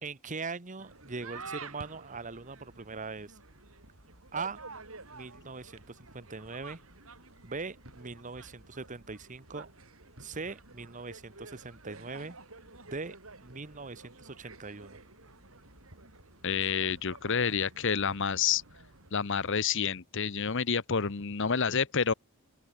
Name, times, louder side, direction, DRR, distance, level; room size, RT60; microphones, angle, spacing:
voice 1, 0.0-3.4 4.3-4.6 5.1-6.8 7.4-9.7 10.2-12.4 12.9-13.2 13.4-15.0, right 4 dB, 35° right, 1.2 m, -41 dB
sound 1, 0.8-19.1, right 3 dB, 75° right, 6.5 m, -50 dB
voice 2, 16.4-18.6 19.1-22.1, left 6 dB, 60° left, 1.0 m, -29 dB
open air
head